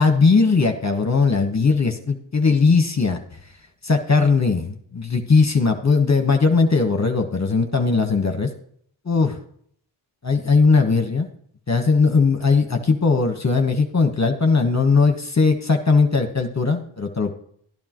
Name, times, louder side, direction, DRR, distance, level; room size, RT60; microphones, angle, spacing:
voice 1, 0.0-3.2 3.8-8.5 9.0-9.4 10.2-11.3 11.7-17.3, left 4 dB, 35° left, 4 dB, 1.3 m, -19 dB
12.5 x 10.5 x 3.1 m, 0.63 s
cardioid pair, 45°, 48 cm